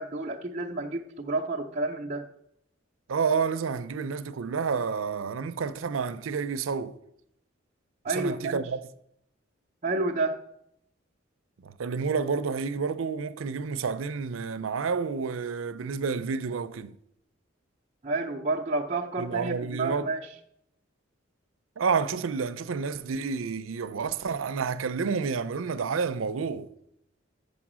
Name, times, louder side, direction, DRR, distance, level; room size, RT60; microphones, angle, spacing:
voice 1, 0.0-2.3 8.0-8.6 9.8-10.4 18.0-20.3, right 2 dB, 35° right, 0.6 m, -30 dB
voice 2, 3.1-6.9 8.1-8.8 11.6-16.9 19.2-20.1 21.8-26.7, right 5 dB, 90° right, 0.5 m, -29 dB
7.0 x 6.7 x 6.1 m
head